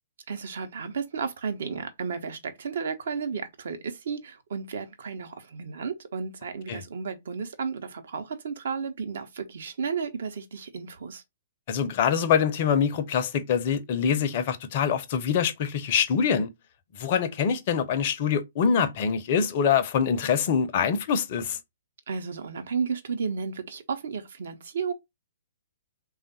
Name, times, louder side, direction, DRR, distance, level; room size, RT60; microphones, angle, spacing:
voice 1, 0.3-11.2 22.1-24.9, right 5 dB, 60° right, 0.8 m, -33 dB
voice 2, 11.7-16.5 17.0-21.6, left 7 dB, 40° left, 0.6 m, -24 dB
3.5 x 2.4 x 3.9 m
figure-of-eight pair, 120°, 0 cm